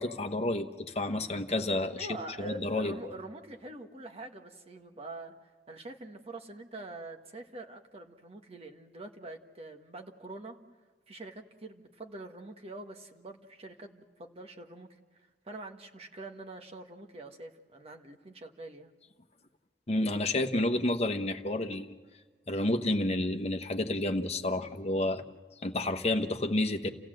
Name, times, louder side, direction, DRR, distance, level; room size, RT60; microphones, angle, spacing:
voice 1, 0.0-2.1 2.4-2.9 19.9-21.9 22.5-25.2 25.6-26.9, left 1 dB, 35° left, 6 dB, 1.1 m, -30 dB
voice 2, 2.0-10.6 11.1-14.9 15.4-18.9, right 2 dB, 35° right, 4 dB, 1.5 m, -45 dB
29.0 x 16.0 x 7.7 m, 1.5 s
head